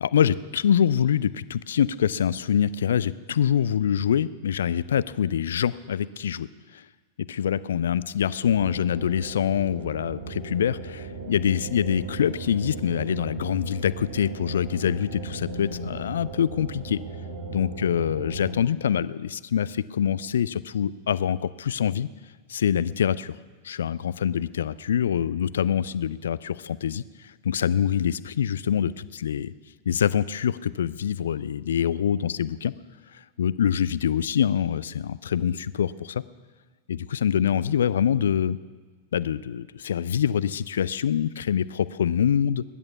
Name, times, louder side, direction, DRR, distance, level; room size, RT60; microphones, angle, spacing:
voice 1, 0.0-6.5 6.7-6.8 7.3-17.0 17.5-22.1 22.5-23.4 23.6-29.5 29.9-32.7 33.1-36.2 36.9-38.6 39.1-42.6, left 8 dB, 65° left, 18 dB, 0.4 m, -25 dB
sound 1, 8.4-18.6, right 3 dB, 65° right, 2.3 m, -37 dB
20.5 x 11.0 x 6.0 m, 1.4 s
figure-of-eight pair, 90°, 0 cm